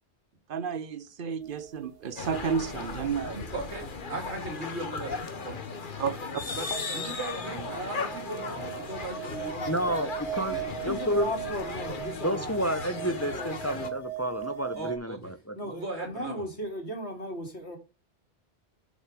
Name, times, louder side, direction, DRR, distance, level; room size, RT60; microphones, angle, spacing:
voice 1, 0.5-3.5 6.0-6.4, right 7 dB, 55° right, 0.9 m, -32 dB
sound 1, 1.4-2.5 2.8-2.9 6.1-6.4 6.7-15.0, right 8 dB, 65° left, 1.7 m, -39 dB
sound 2, 2.2-13.9, left 4 dB, 50° left, 1.3 m, -37 dB
voice 2, 3.5-5.6 6.5-10.7 14.7-15.3 15.6-16.4, right 2 dB, 85° right, 2.8 m, -38 dB
voice 3, 9.7-10.6 10.8-11.3 12.2-15.6, equal, 15° left, 0.6 m, -30 dB
voice 4, 10.7-12.6 12.9-13.8 15.5-17.8, equal, 85° left, 3.2 m, -37 dB
7.9 x 6.3 x 5.1 m
omnidirectional pair, 1.1 m